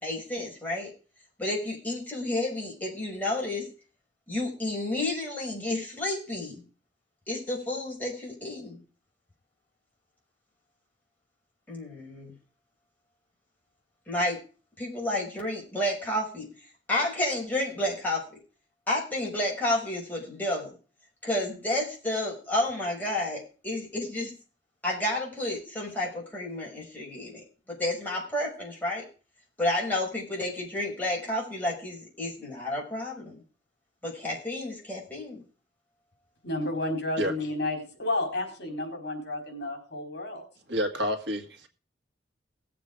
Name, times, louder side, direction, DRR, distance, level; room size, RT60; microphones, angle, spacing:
voice 1, 0.0-0.9 1.4-3.7 4.3-6.6 7.3-8.8 11.7-12.3 14.1-14.4 14.8-16.5 16.9-18.2 18.9-20.8 21.2-24.3 24.8-27.4 27.8-29.0 29.6-33.4 34.0-35.4, left 1 dB, 10° left, 6.0 m, -31 dB
voice 2, 36.4-40.4, left 2 dB, 65° left, 4.5 m, -31 dB
voice 3, 40.7-41.7, equal, 70° right, 1.9 m, -29 dB
18.0 x 7.8 x 4.9 m
head